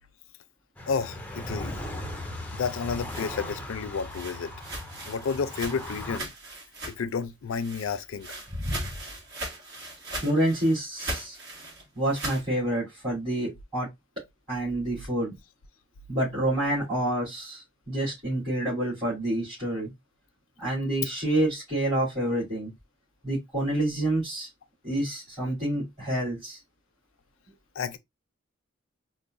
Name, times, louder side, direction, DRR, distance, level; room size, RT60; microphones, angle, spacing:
sound 1, 0.8-6.2, left 1 dB, 10° left, 0.4 m, -38 dB
voice 1, 0.9-1.8 2.5-4.5 5.1-6.3 7.0-8.3 27.8-28.0, left 5 dB, 80° left, 0.4 m, -31 dB
sound 2, 2.9-7.2 7.5-12.5, right 1 dB, 55° right, 1.3 m, -39 dB
voice 2, 10.2-11.4 11.9-13.9 14.5-15.3 16.1-19.9 20.6-22.7 23.2-24.5 24.8-26.6, right 1 dB, 25° right, 2.6 m, -28 dB
4.8 x 2.1 x 2.4 m
head